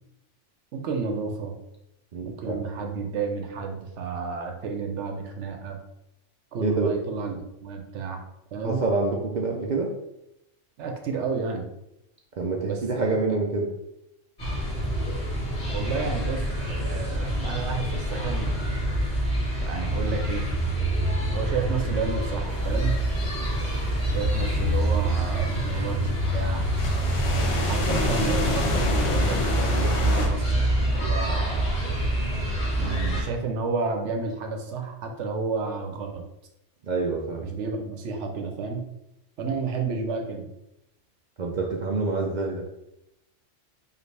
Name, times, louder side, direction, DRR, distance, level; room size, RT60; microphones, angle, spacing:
voice 1, 0.7-1.6 2.2-5.8 6.5-7.3 7.6-8.2 8.5-8.8 10.8-11.7 12.6-13.1 15.7-16.5 16.8-18.5 19.6-20.5 21.3-23.0 24.1-26.7 27.7-30.6 30.9-31.7 32.8-36.2 37.4-38.8 39.4-40.5, right 4 dB, 75° right, 4 dB, 1.0 m, -31 dB
voice 2, 2.1-2.7 6.6-6.9 8.6-9.9 12.4-13.7 36.8-37.4 41.4-42.6, right 3 dB, 55° right, 0 dB, 0.5 m, -27 dB
sound 1, 14.4-33.2, right 1 dB, 35° left, 1.6 m, -26 dB
sound 2, 22.5-30.3, left 2 dB, 70° left, 1.1 m, -30 dB
5.1 x 2.5 x 3.3 m, 0.85 s
omnidirectional pair, 1.3 m